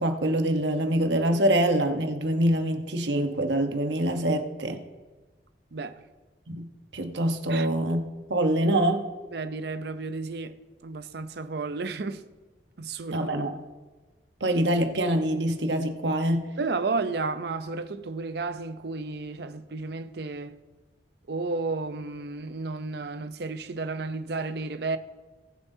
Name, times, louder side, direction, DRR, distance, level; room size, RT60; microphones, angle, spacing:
voice 1, 0.0-4.8 6.5-9.1 13.1-13.5 14.4-16.5, right 1 dB, 90° right, 1.0 m, -25 dB
voice 2, 5.7-6.0 7.5-7.7 9.3-10.5 10.8-12.2 12.8-13.3 16.6-20.6 21.3-25.0, right 3 dB, 65° right, 0.6 m, -32 dB
19.5 x 7.3 x 2.7 m
head